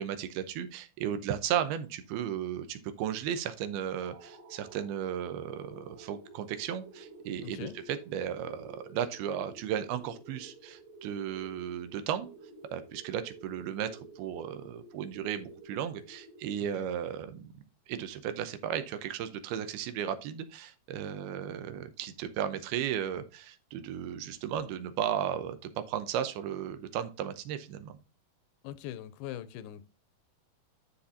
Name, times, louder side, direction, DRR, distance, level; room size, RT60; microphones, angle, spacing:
voice 1, 0.0-12.3 12.7-17.5 17.9-27.9, right 9 dB, 85° right, 2.8 m, -35 dB
sound 1, 4.0-17.2, right 2 dB, 45° right, 3.4 m, -52 dB
voice 2, 7.4-7.8 16.6-16.9 28.6-29.9, left 11 dB, 85° left, 2.4 m, -42 dB
12.0 x 4.3 x 2.7 m
omnidirectional pair, 4.4 m